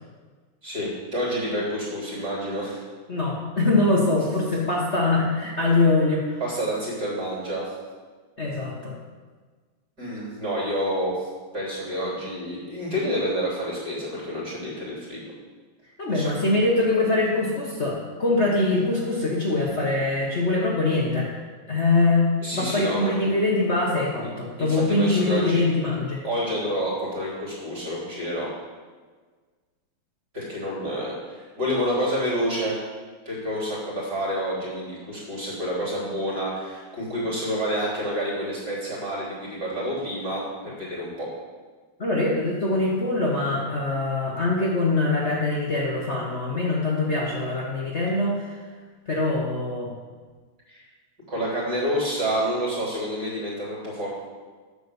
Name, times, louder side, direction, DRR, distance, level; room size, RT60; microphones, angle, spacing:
voice 1, 0.6-2.8 6.4-7.7 10.0-11.3 11.5-15.2 16.1-16.6 22.4-23.2 24.6-25.7 26.2-28.5 30.3-32.8 33.3-41.3 50.7-50.8 51.3-54.1, equal, 30° right, -6 dB, 3.8 m, -28 dB
voice 2, 3.1-6.4 8.4-8.9 16.0-21.3 21.7-26.2 42.0-48.6 49.1-49.9, left 2 dB, 80° left, -4 dB, 0.6 m, -23 dB
8.9 x 6.6 x 7.0 m, 1.4 s
omnidirectional pair, 3.5 m